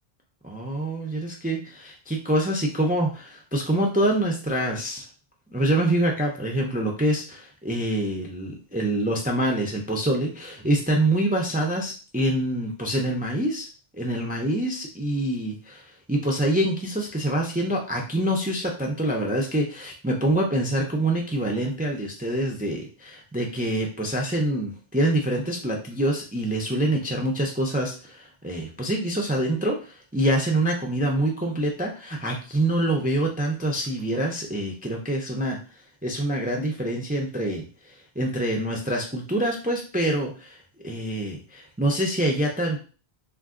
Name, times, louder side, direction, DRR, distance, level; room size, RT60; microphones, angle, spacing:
voice 1, 0.4-5.0 5.5-13.7 13.9-35.6 36.0-37.6 38.2-40.6 40.8-42.8, right 1 dB, 15° right, 0 dB, 0.3 m, -25 dB
2.5 x 2.4 x 3.6 m, 0.36 s
omnidirectional pair, 1.1 m